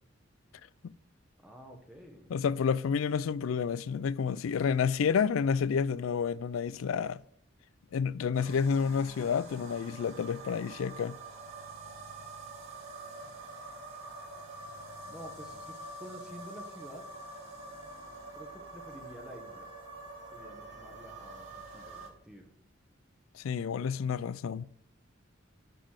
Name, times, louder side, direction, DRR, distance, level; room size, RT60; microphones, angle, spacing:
voice 1, 1.4-2.3 15.0-17.0 18.3-19.7 20.3-22.5, equal, 5° right, 1.1 m, -49 dB
voice 2, 2.3-7.2 7.9-11.1 23.3-24.6, left 6 dB, 85° left, 0.4 m, -30 dB
sound 1, 8.3-22.1, right 2 dB, 75° right, 2.6 m, -46 dB
11.5 x 4.0 x 6.3 m
head